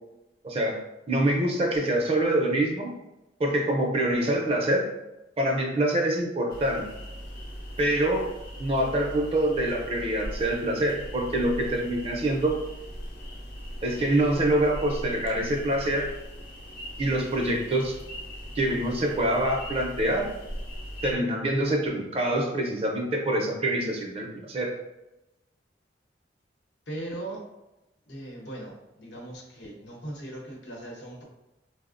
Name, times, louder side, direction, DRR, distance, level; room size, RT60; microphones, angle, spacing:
voice 1, 0.4-2.9 3.4-4.9 5.4-6.9 7.8-8.3 8.6-12.6 13.8-16.1 17.0-18.0 18.6-20.3 21.0-24.7, right 1 dB, 35° right, 1 dB, 0.5 m, -25 dB
sound 1, 6.5-21.1, equal, 55° left, 0.5 m, -40 dB
voice 2, 26.9-27.4 28.1-31.2, right 1 dB, 80° left, -2 dB, 0.9 m, -39 dB
3.6 x 2.0 x 2.4 m, 0.94 s
head